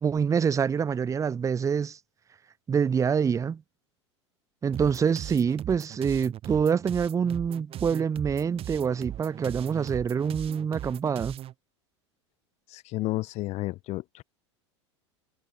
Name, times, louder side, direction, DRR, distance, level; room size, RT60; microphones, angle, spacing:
voice 1, 0.0-2.0 2.7-3.6 4.6-11.4, right 6 dB, 20° right, 0.9 m, -26 dB
sound 1, 4.7-11.5, right 12 dB, 40° right, 2.8 m, -39 dB
voice 2, 12.7-14.2, left 18 dB, 45° left, 1.6 m, -32 dB
hypercardioid pair, 85°, 15 cm